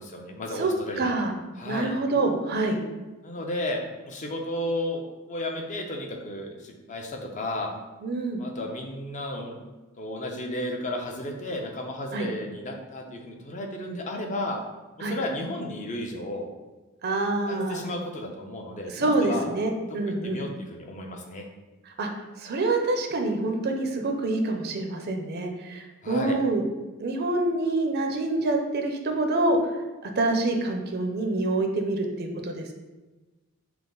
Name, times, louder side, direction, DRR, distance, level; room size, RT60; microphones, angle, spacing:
voice 1, 0.0-1.2 1.6-1.9 3.2-7.7 8.4-9.6 10.0-14.6 15.0-16.5 17.5-19.5 20.2-21.5 26.0-26.4, left 1 dB, 35° left, 2 dB, 0.5 m, -33 dB
voice 2, 0.6-1.3 1.7-2.8 8.0-8.4 12.1-12.3 15.0-15.2 17.0-17.8 18.8-20.4 21.9-22.1 22.4-26.6 27.0-29.7 30.2-32.7, right 2 dB, 50° right, 4 dB, 0.5 m, -26 dB
5.7 x 2.0 x 3.8 m, 1.2 s
head